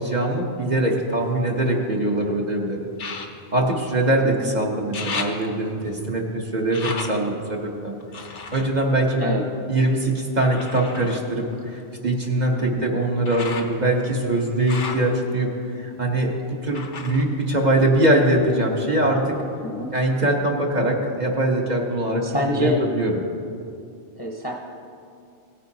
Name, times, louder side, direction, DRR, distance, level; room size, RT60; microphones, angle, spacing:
voice 1, 0.0-2.8 3.5-7.9 8.5-9.4 9.7-19.4 19.9-23.1, right 1 dB, 40° right, -1 dB, 1.1 m, -22 dB
sound 1, 0.8-2.1 2.9-4.4 4.7-9.9 10.5-18.4 18.7-19.5 20.0-20.1, left 4 dB, 75° left, 1.2 m, -37 dB
voice 2, 19.6-19.9 22.2-22.8 24.2-24.5, left 1 dB, 20° left, -1 dB, 0.8 m, -26 dB
17.5 x 9.9 x 2.8 m, 2.4 s
omnidirectional pair, 1.2 m